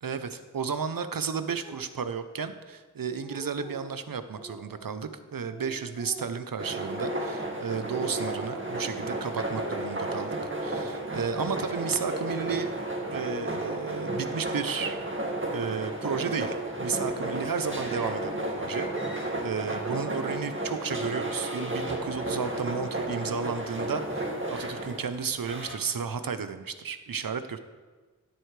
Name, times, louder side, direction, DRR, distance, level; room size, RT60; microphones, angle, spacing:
voice 1, 0.0-12.7 13.1-15.0 15.5-27.6, right 6 dB, 85° right, 11 dB, 0.7 m, -33 dB
Speech, 1.6-1.9 2.6-2.7 3.0-3.9 4.3-4.9 5.5-7.7 8.0-9.0 9.4-10.4 10.7-11.4 11.7-12.9, right 1 dB, 5° left, 3.2 m, -46 dB
sound 1, 6.6-25.8, right 1 dB, 35° right, 1.8 m, -33 dB
15.0 x 7.8 x 3.3 m, 1.4 s
wide cardioid pair, 40°, 33 cm